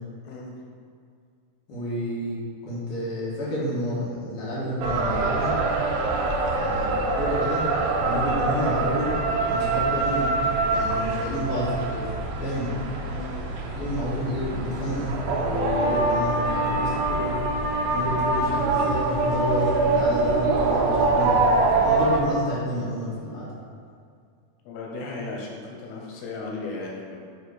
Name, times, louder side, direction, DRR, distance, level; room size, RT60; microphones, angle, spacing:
voice 1, 0.2-0.6 13.1-13.4 24.7-27.2, left 3 dB, 90° left, -1 dB, 2.8 m, -36 dB
voice 2, 1.7-5.6 6.5-7.7 7.9-9.2 9.4-10.3 10.7-12.7 13.7-17.4 17.9-23.5, equal, 50° left, -8 dB, 2.1 m, -30 dB
sound 1, 4.8-22.2, right 3 dB, 85° right, 2.5 m, -24 dB
7.3 x 3.2 x 4.8 m, 2.2 s
omnidirectional pair, 4.3 m